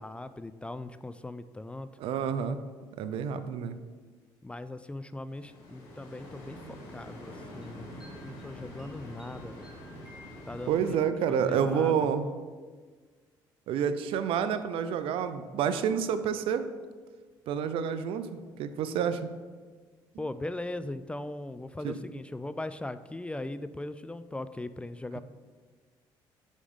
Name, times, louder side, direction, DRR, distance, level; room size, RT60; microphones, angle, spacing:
voice 1, 0.0-1.9 4.4-9.8 10.5-11.0 11.3-12.1 20.2-25.2, left 2 dB, 10° left, 13 dB, 0.3 m, -39 dB
voice 2, 2.0-2.6 3.0-3.8 6.7-6.8 10.7-12.3 13.7-16.7 17.5-18.3 18.6-19.3 21.8-22.0, right 7 dB, 70° right, 11 dB, 0.5 m, -29 dB
sound 1, 5.3-11.0, equal, 90° left, 1.6 m, -45 dB
sound 2, 7.6-11.1, left 1 dB, 10° right, 1.7 m, -57 dB
5.2 x 4.9 x 5.3 m, 1.5 s
supercardioid pair, 75°, 9 cm